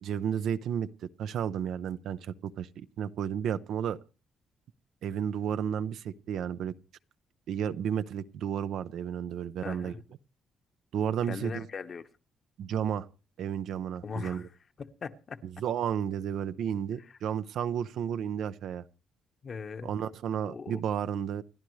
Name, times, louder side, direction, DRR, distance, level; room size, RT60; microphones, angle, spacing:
voice 1, 0.0-4.0 5.0-6.7 7.5-9.9 10.9-11.7 12.6-13.1 13.4-14.5 15.6-18.8 19.8-21.4, right 8 dB, 75° right, 0.6 m, -32 dB
voice 2, 9.6-10.0 11.3-12.0 14.0-14.5 14.8-15.4 19.4-19.9 20.4-20.8, left 5 dB, 45° left, 1.1 m, -39 dB
29.0 x 10.5 x 3.2 m
cardioid pair, 90°, 0 cm